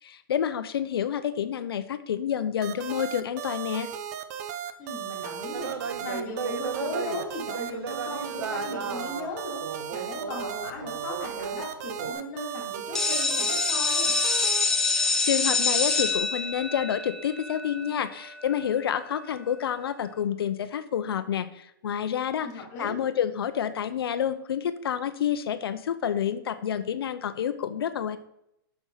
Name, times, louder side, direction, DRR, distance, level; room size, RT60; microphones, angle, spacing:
voice 1, 0.0-3.9 15.3-28.2, left 9 dB, 85° left, 10 dB, 0.7 m, -29 dB
sound 1, 2.6-14.6, right 10 dB, 40° right, 0.8 m, -36 dB
voice 2, 4.8-14.2 22.3-23.0, left 2 dB, 30° left, -2 dB, 3.1 m, -37 dB
sound 2, 5.5-11.7 12.0-12.1, right 5 dB, 90° right, 1.1 m, -35 dB
sound 3, 12.9-18.6, left 3 dB, 5° left, 0.8 m, -26 dB
7.2 x 6.2 x 5.5 m, 0.78 s
hypercardioid pair, 160°, 12 cm